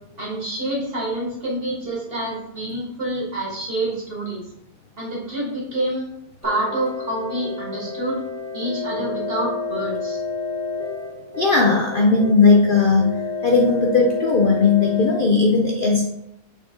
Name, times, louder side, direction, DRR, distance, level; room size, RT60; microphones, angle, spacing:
voice 1, 0.2-4.4 5.0-6.1 6.4-8.2 8.5-10.2, right 1 dB, 35° right, -5 dB, 2.2 m, -27 dB
sound 1, 6.4-15.2, left 4 dB, 10° left, 1.1 m, -30 dB
voice 2, 11.4-13.1 13.4-16.1, left 4 dB, 55° left, 1 dB, 0.5 m, -17 dB
6.5 x 3.9 x 3.7 m, 0.81 s
omnidirectional pair, 1.8 m